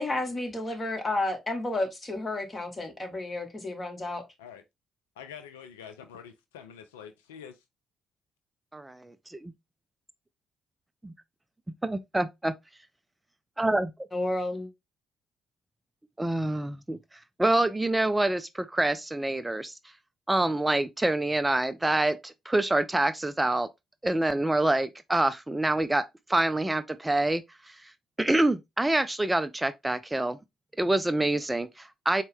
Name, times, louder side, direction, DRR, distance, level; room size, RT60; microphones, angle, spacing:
voice 1, 0.0-4.2 14.1-14.7, left 2 dB, 30° left, 1.3 m, -31 dB
voice 2, 5.2-7.5, left 8 dB, 80° left, 0.3 m, -46 dB
voice 3, 8.7-9.5 11.0-11.1 11.8-12.5 13.6-13.9 16.2-17.0 17.4-19.8 20.3-23.7 24.0-26.0 26.3-27.8 28.2-30.4 30.8-32.2, right 2 dB, 15° right, 0.4 m, -26 dB
4.1 x 2.2 x 3.3 m
hypercardioid pair, 45°, 0 cm